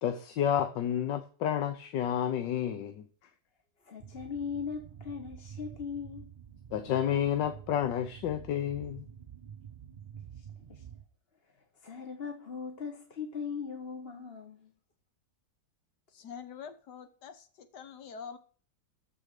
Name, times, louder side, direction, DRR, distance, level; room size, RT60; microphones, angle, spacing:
voice 1, 0.0-3.0 6.7-9.1, left 9 dB, 85° left, 1.5 m, -30 dB
voice 2, 3.8-6.3 10.4-10.8 11.8-14.7, left 6 dB, 35° left, 1.4 m, -39 dB
sound 1, 4.0-11.0, right 8 dB, 85° right, 0.4 m, -48 dB
voice 3, 16.1-18.4, left 6 dB, 70° left, 1.8 m, -45 dB
14.0 x 5.0 x 6.6 m
omnidirectional pair, 1.9 m